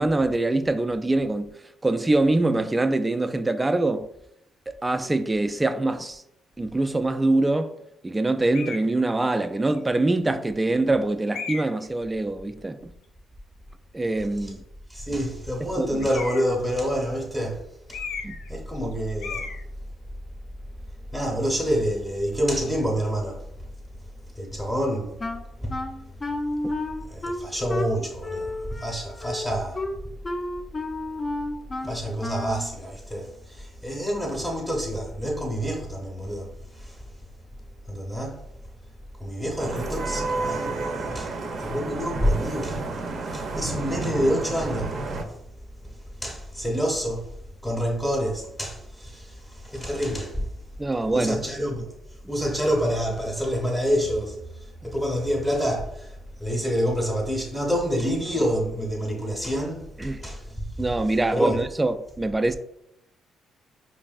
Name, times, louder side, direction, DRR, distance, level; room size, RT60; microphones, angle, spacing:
voice 1, 0.0-1.5 1.8-4.1 4.8-6.2 6.6-7.7 8.0-12.9 13.9-14.6 15.6-15.9 18.2-18.3 43.2-43.4 50.8-51.4 60.0-60.2 60.8-62.5, right 2 dB, 15° right, 0.3 m, -24 dB
sound 1, 8.5-8.9 9.7-9.8 11.3-11.9 16.0-16.6 17.9-18.5 18.8-18.9 19.2-19.6, left 5 dB, 85° left, 0.4 m, -35 dB
voice 2, 14.9-17.6 17.9-18.0 18.5-19.5 21.1-23.4 24.3-25.2 25.6-25.8 27.0-29.8 31.8-37.0 37.9-38.4 39.2-45.2 45.8-45.9 46.2-47.3 47.6-50.5 51.1-51.9 52.3-60.9 61.3-61.6, equal, 10° left, 0.9 m, -28 dB
Wind instrument woodwind instrument, 25.2-32.7, left 2 dB, 30° left, 0.5 m, -32 dB
Vehicle horn car horn honking / Traffic noise roadway noise, 39.6-45.2, right 3 dB, 60° right, 0.6 m, -31 dB
5.2 x 2.6 x 2.4 m
cardioid pair, 90°, 0 cm